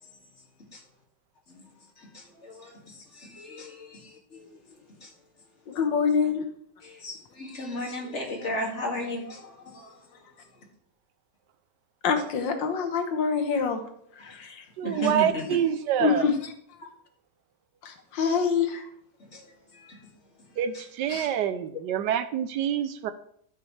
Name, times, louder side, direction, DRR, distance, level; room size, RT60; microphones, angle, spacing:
voice 1, 3.4-3.7 6.1-6.2 7.0-9.4 14.8-15.6 21.1-21.3, left 1 dB, 40° left, -1 dB, 2.4 m, -32 dB
voice 2, 5.7-6.4 12.0-13.8 14.2-14.6 16.0-16.3 17.8-18.8 21.1-21.3, left 6 dB, 85° left, 6 dB, 1.9 m, -25 dB
voice 3, 14.8-16.3 20.6-23.1, right 9 dB, 75° right, 12 dB, 1.1 m, -26 dB
12.5 x 7.5 x 3.2 m, 0.67 s
omnidirectional pair, 2.0 m